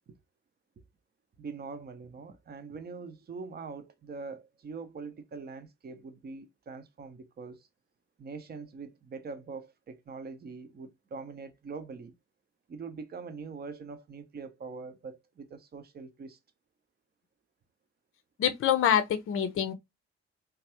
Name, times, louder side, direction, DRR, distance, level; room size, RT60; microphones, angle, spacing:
voice 1, 1.4-7.7 8.2-12.1 12.7-16.4, right 4 dB, 30° right, 0.7 m, -43 dB
voice 2, 18.4-19.7, left 9 dB, 40° left, 0.6 m, -26 dB
3.0 x 2.3 x 2.9 m
figure-of-eight pair, 45°, 33 cm